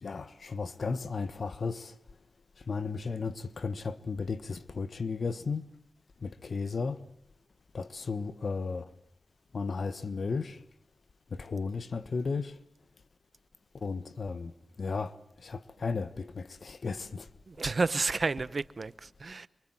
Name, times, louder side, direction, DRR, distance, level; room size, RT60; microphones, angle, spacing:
voice 1, 0.0-1.9 2.7-5.6 6.2-7.0 7.7-8.9 9.5-10.6 11.3-12.5 13.8-14.5 14.8-15.1 15.4-17.3, left 4 dB, 70° left, 1.4 m, -34 dB
voice 2, 17.5-19.5, right 3 dB, 60° right, 1.0 m, -31 dB
27.5 x 24.0 x 7.8 m
cardioid pair, 40°, 0 cm